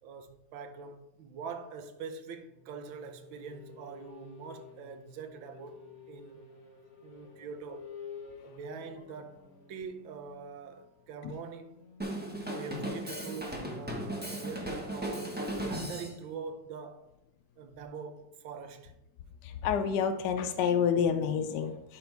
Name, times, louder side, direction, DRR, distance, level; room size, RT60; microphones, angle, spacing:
voice 1, 0.0-6.4 7.0-7.9 8.4-11.8 12.5-17.1 17.6-18.9, right 5 dB, 75° right, 1.5 m, -44 dB
sound 1, 2.4-17.0, left 5 dB, 40° left, 1.1 m, -53 dB
Drum kit, 12.0-16.2, right 1 dB, 10° right, 0.4 m, -36 dB
voice 2, 19.4-22.0, left 7 dB, 70° left, 1.0 m, -29 dB
12.0 x 4.3 x 3.4 m
omnidirectional pair, 2.3 m